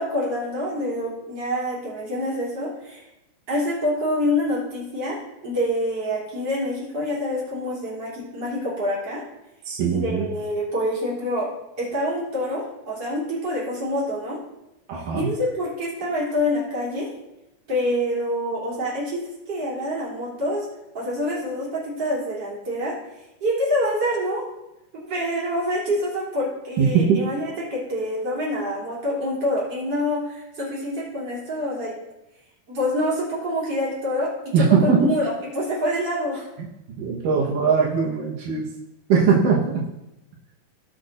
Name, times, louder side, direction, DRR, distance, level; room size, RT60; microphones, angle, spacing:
voice 1, 0.0-3.0 3.5-9.2 9.9-11.5 11.8-14.4 15.0-17.1 17.7-20.7 20.9-22.9 23.4-24.4 24.9-31.9 32.7-34.3 34.8-36.5, left 1 dB, 35° right, -6 dB, 3.8 m, -26 dB
voice 2, 9.7-10.3 14.9-15.3 26.8-27.2 34.5-35.1 36.6-36.7 37.0-38.7 39.1-39.8, right 5 dB, 80° right, -3 dB, 2.9 m, -20 dB
18.0 x 6.2 x 2.6 m, 0.93 s
omnidirectional pair, 3.7 m